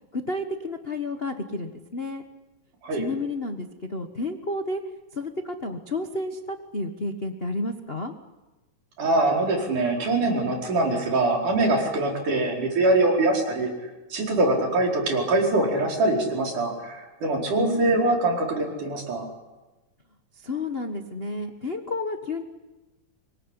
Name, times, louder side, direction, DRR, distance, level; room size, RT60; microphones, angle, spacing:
voice 1, 0.1-2.2 2.9-4.8 5.1-8.1 17.6-18.0 20.4-22.4, left 2 dB, 50° left, 5 dB, 0.7 m, -31 dB
voice 2, 9.0-13.7 14.1-19.3, right 2 dB, 85° right, 0 dB, 6.2 m, -23 dB
25.5 x 22.5 x 9.9 m, 1.1 s
omnidirectional pair, 3.5 m